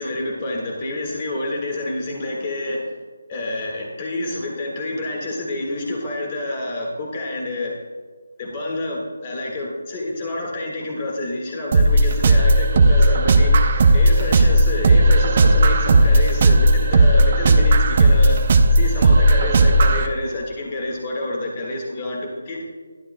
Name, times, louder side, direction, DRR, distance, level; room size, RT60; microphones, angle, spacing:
voice 1, 0.0-2.9 3.3-7.7 8.4-13.5 13.9-18.4 18.7-22.6, left 2 dB, 15° left, -1 dB, 1.7 m, -28 dB
sound 1, 11.7-20.1, right 1 dB, 20° right, 0.5 m, -15 dB
21.0 x 12.0 x 2.2 m, 1.5 s
figure-of-eight pair, 180°, 0 cm